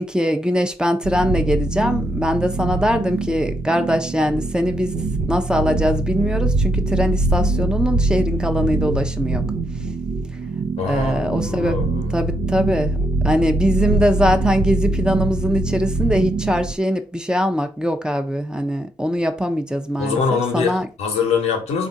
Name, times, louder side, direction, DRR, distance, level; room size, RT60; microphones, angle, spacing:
voice 1, 0.0-4.9 5.2-9.4 10.8-11.8 12.1-13.0 13.2-20.9, equal, 10° right, 0.7 m, -21 dB
sound 1, 1.0-16.7, right 2 dB, 70° right, 0.5 m, -23 dB
voice 2, 10.8-12.3 20.0-21.9, left 6 dB, 90° left, 0.8 m, -23 dB
3.6 x 2.4 x 4.0 m
supercardioid pair, 50°, 11 cm